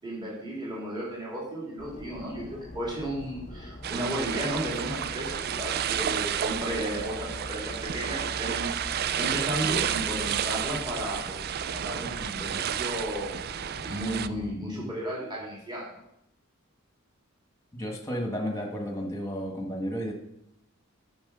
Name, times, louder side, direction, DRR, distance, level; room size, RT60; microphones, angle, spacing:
voice 1, 0.0-13.3 13.8-16.0, right 1 dB, 20° right, -5 dB, 3.1 m, -34 dB
sound 1, 1.8-14.5, left 1 dB, 35° left, 0.8 m, -43 dB
sound 2, 3.8-14.3, right 9 dB, 45° right, 0.3 m, -31 dB
voice 2, 17.7-20.1, equal, 15° left, 2 dB, 1.5 m, -32 dB
10.0 x 6.2 x 5.5 m, 0.75 s
head